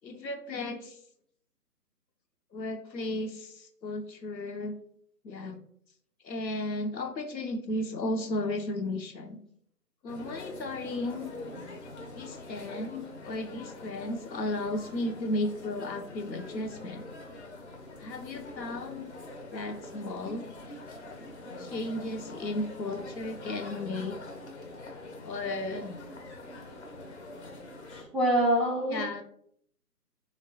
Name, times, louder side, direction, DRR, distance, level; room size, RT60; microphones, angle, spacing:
voice 1, 0.0-1.0 2.5-4.7 5.2-5.6 6.2-9.4 10.0-11.3 12.1-17.0 18.0-19.1 19.5-20.5 21.6-24.2 25.2-26.0 28.9-29.2, left 2 dB, 90° left, 6 dB, 0.7 m, -34 dB
sound 1, 10.1-28.0, left 2 dB, 45° left, 0.6 m, -44 dB
voice 2, 11.4-11.7 21.7-21.9 27.9-29.2, right 1 dB, ahead, -6 dB, 0.3 m, -28 dB
3.2 x 2.2 x 3.8 m, 0.66 s
figure-of-eight pair, 145°, 50 cm